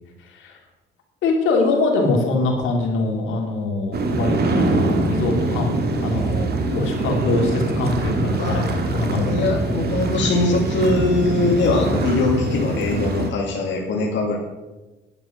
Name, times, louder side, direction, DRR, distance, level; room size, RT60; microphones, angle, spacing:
voice 1, 0.2-0.6 1.2-9.5, left 3 dB, 85° left, 1 dB, 2.9 m, -23 dB
sound 1, 3.9-13.3, right 2 dB, 55° right, 2.0 m, -23 dB
voice 2, 9.1-14.4, left 3 dB, 65° left, -1 dB, 2.2 m, -21 dB
10.5 x 9.7 x 6.0 m, 1.1 s
cardioid pair, 90°, 20 cm